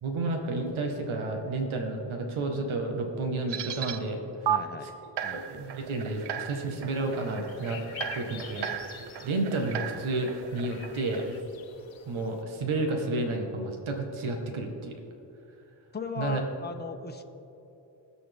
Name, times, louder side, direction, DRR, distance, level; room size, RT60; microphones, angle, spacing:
voice 1, 0.0-4.5 5.3-7.8 8.1-8.7 9.2-11.4 12.0-15.0 16.2-16.4, right 2 dB, 90° right, 3 dB, 1.3 m, -31 dB
sound 1, 3.5-4.0 4.5-4.6 5.2-11.4, right 9 dB, 60° right, 0.7 m, -36 dB
voice 2, 4.5-4.9 5.2-5.4 7.9-8.0 9.1-9.3 15.9-17.2, left 5 dB, 20° left, 5 dB, 1.0 m, -37 dB
sound 2, 6.9-12.4, left 9 dB, 75° left, 1.0 m, -47 dB
20.5 x 7.0 x 3.4 m, 2.9 s
cardioid pair, 45°, 47 cm